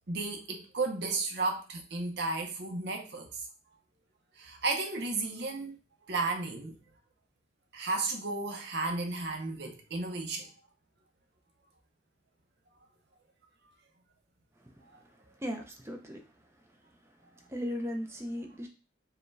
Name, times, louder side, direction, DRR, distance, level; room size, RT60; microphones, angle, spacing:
voice 1, 0.1-3.5 4.4-5.8 6.1-6.8 7.7-10.5 14.9-15.0, right 3 dB, 60° right, 3 dB, 0.8 m, -33 dB
voice 2, 15.4-16.2 17.5-18.7, equal, 15° right, 3 dB, 0.6 m, -36 dB
4.8 x 2.3 x 3.2 m, 0.33 s
head